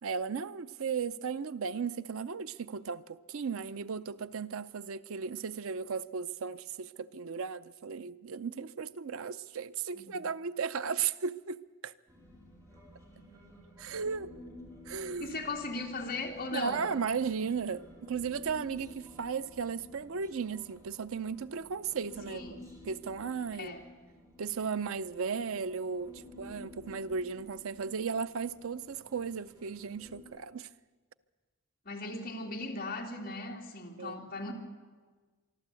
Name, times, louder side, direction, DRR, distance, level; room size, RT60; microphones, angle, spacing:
voice 1, 0.0-11.9 13.8-14.3 14.9-15.4 16.5-23.7 24.4-30.7 34.0-34.2, right 5 dB, 75° right, 0.6 m, -35 dB
Human voice, 12.1-30.2, left 1 dB, 15° right, 4.5 m, -53 dB
voice 2, 15.2-16.9 22.3-22.6 23.6-23.8 31.8-34.5, left 2 dB, 45° left, 2.8 m, -38 dB
24.5 x 13.0 x 8.3 m
head